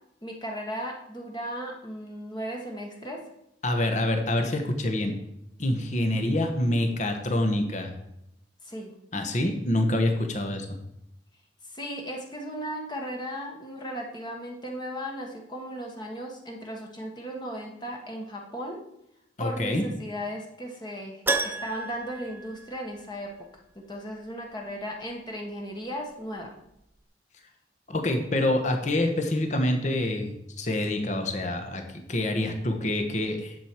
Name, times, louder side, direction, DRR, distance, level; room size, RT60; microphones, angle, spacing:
voice 1, 0.2-3.2 8.6-8.9 11.7-18.8 19.4-23.4 23.7-26.5, equal, 25° left, 1 dB, 1.4 m, -36 dB
voice 2, 3.6-5.1 5.6-7.9 9.1-10.8 19.4-19.8 27.9-33.5, left 1 dB, 40° left, 5 dB, 1.3 m, -26 dB
Keyboard (musical), 21.3-23.3 23.6-23.7 26.4-26.5 26.7-26.8, right 3 dB, 10° right, 0.4 m, -31 dB
10.5 x 7.4 x 4.6 m, 0.81 s
head